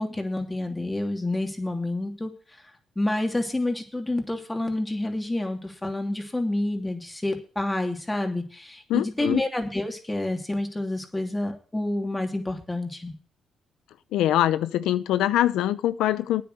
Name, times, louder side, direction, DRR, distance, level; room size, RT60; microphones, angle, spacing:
voice 1, 0.0-2.3 3.0-13.2, left 1 dB, 15° left, 3.0 m, -28 dB
voice 2, 8.9-9.4 14.1-16.4, left 13 dB, 85° left, 0.7 m, -23 dB
9.4 x 8.4 x 7.9 m
cardioid pair, 90°, 0 cm